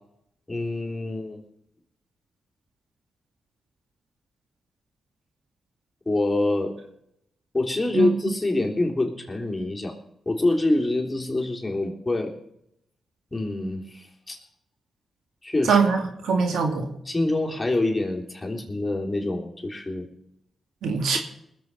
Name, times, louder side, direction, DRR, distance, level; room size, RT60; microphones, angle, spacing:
voice 1, 0.5-1.4 6.0-6.7 7.5-9.9 10.2-12.3 13.3-14.4 15.4-15.8 17.1-20.1 21.1-21.2, left 2 dB, 20° left, 0 dB, 3.5 m, -26 dB
voice 2, 15.6-16.9 20.8-21.2, right 5 dB, 85° right, 4 dB, 2.2 m, -22 dB
20.0 x 7.7 x 5.6 m, 0.76 s
cardioid pair, 55°, 0 cm